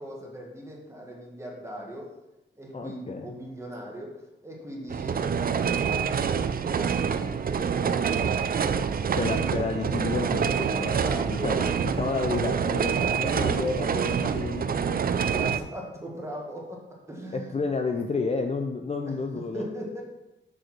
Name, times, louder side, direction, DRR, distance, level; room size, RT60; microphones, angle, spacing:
voice 1, 0.0-2.1 2.6-9.2 10.8-11.7 15.2-17.6 19.1-19.2 19.5-20.0, equal, 15° right, -2 dB, 1.6 m, -39 dB
voice 2, 2.7-3.3 9.2-10.9 11.3-11.6 11.8-15.1 17.3-19.7, left 4 dB, 30° left, 4 dB, 0.5 m, -30 dB
sound 1, 4.9-15.6, right 7 dB, 45° right, 0.4 m, -26 dB
6.5 x 4.9 x 6.0 m, 0.96 s
wide cardioid pair, 155°, 21 cm